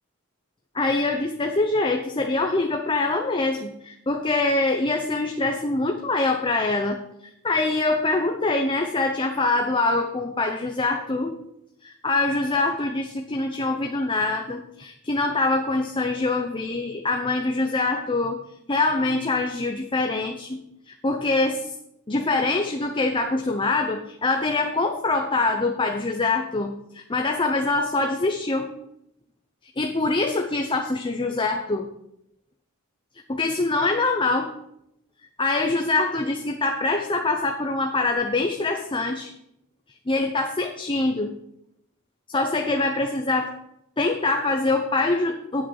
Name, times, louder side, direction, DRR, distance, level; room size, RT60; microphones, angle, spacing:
voice 1, 0.7-11.4 11.8-18.4 18.7-21.7 22.1-28.7 29.8-31.9 33.3-34.5 35.4-39.3 40.1-41.3 42.3-43.5 44.0-45.7, left 2 dB, 25° left, 4 dB, 0.8 m, -24 dB
8.6 x 7.7 x 7.0 m, 0.78 s
head